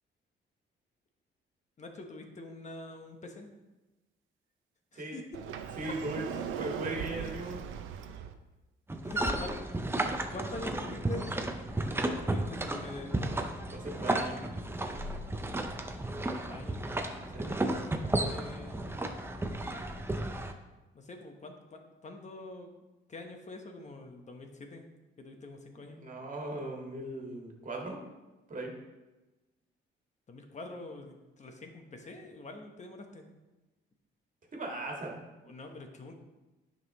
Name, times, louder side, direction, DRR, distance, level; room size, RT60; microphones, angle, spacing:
voice 1, 1.8-3.5 4.9-5.4 6.2-6.6 7.2-7.3 9.0-9.9 10.3-11.5 12.0-13.4 16.2-16.9 18.1-18.9 20.9-22.7 23.1-24.9 25.2-26.0 30.3-33.2 35.4-36.1, left 2 dB, 35° left, 4 dB, 1.2 m, -45 dB
Sliding door, 5.3-8.3, right 8 dB, 85° right, 0.6 m, -39 dB
voice 2, 5.8-6.3 6.6-7.6 13.7-14.4 17.3-17.6 26.0-28.0 28.5-28.7 34.5-35.2, right 2 dB, 40° right, 0 dB, 1.8 m, -38 dB
sound 1, 8.9-20.5, right 1 dB, 10° right, 0.7 m, -33 dB
9.5 x 5.6 x 3.1 m, 1.1 s
cardioid pair, 90°, 20 cm